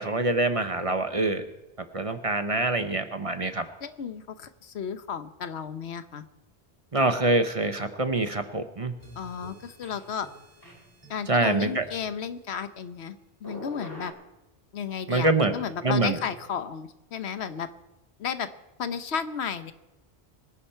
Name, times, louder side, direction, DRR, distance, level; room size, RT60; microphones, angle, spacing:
voice 1, 0.0-1.4 1.9-3.6 6.9-8.9 11.3-11.8 15.1-15.5 15.8-16.2, right 2 dB, 35° right, 9 dB, 1.0 m, -25 dB
voice 2, 3.8-6.2 9.2-10.3 11.1-13.2 13.4-14.1 14.7-17.7 18.2-18.5 18.8-19.7, left 7 dB, 75° left, 12 dB, 1.2 m, -33 dB
sound 1, 9.0-12.3 13.4-14.1, equal, 20° left, 5.7 m, -46 dB
24.0 x 10.5 x 4.4 m, 0.98 s
omnidirectional pair, 1.1 m